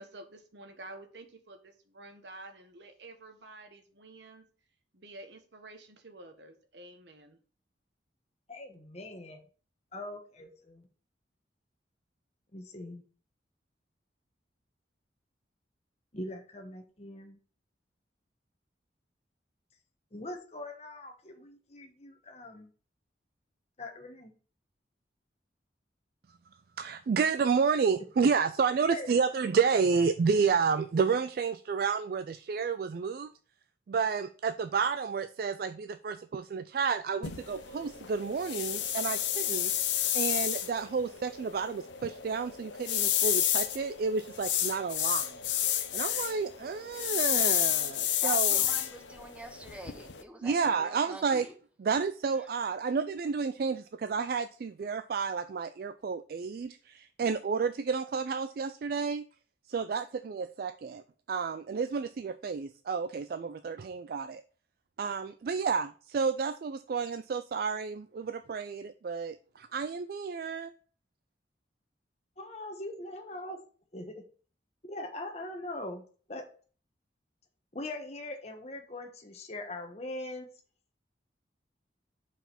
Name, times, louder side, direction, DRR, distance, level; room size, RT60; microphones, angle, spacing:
voice 1, 0.0-4.4 4.9-7.4, right 2 dB, 75° right, 1.2 m, -50 dB
voice 2, 8.5-9.4 9.9-10.9 12.5-13.0 16.1-17.4 20.1-22.7 23.8-24.3 28.9-29.1 72.4-73.6 73.9-74.2 74.8-76.0 76.3-76.5 77.7-80.5, left 1 dB, 35° left, 1.1 m, -41 dB
voice 3, 26.8-33.3 33.9-39.7 40.1-45.4 45.9-48.6 50.4-51.5 51.8-59.3 59.7-61.0 61.3-64.4 65.0-70.7, right 5 dB, 55° right, 0.3 m, -30 dB
sound 1, 37.2-50.2, left 11 dB, 85° left, 0.8 m, -31 dB
voice 4, 48.2-51.5, right 1 dB, 5° right, 0.8 m, -46 dB
5.6 x 4.8 x 5.7 m
head